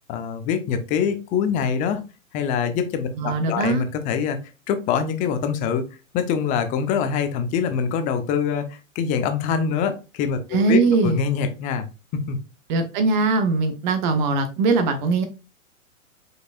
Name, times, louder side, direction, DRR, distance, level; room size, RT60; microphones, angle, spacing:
voice 1, 0.1-2.0 2.3-4.4 4.7-5.8 6.1-11.9 12.1-12.4, left 7 dB, 20° left, 0.5 m, -24 dB
voice 2, 3.2-3.8 10.5-11.2 12.7-15.2, right 3 dB, 35° right, 0.7 m, -21 dB
4.7 x 4.7 x 2.4 m
hypercardioid pair, 125°, 42 cm